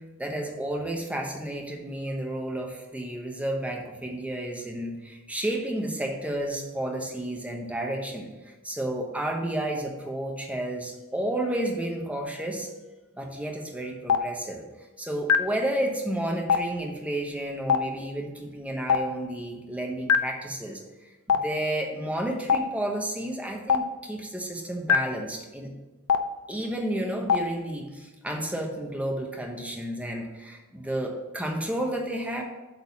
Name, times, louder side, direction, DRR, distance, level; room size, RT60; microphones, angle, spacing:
voice 1, 0.0-8.3 8.6-12.7 13.1-14.6 15.0-25.7 26.5-32.4, right 1 dB, 5° right, 1 dB, 1.1 m, -31 dB
Stream, 14.1-14.2 15.3-15.4 16.5-16.6 17.7-17.8 18.9-19.0 20.1-20.2 21.3-21.4 22.5-22.6 23.7-23.8 24.9-25.0 26.1-26.2 27.3-27.4, left 6 dB, 85° left, 0.6 m, -20 dB
8.0 x 4.0 x 6.2 m, 1.1 s
head